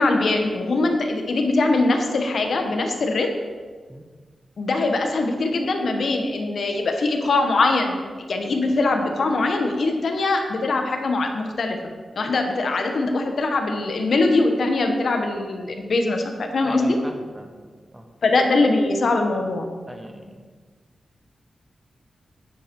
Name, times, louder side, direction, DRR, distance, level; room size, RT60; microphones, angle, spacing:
voice 1, 0.0-3.3 4.6-7.9 8.3-11.8 12.2-17.0 18.2-19.7, left 2 dB, 55° left, 4 dB, 1.3 m, -22 dB
voice 2, 16.6-18.0 19.9-20.4, right 1 dB, 10° right, 4 dB, 0.9 m, -39 dB
10.5 x 9.8 x 4.6 m, 1.5 s
wide cardioid pair, 180°, 0 cm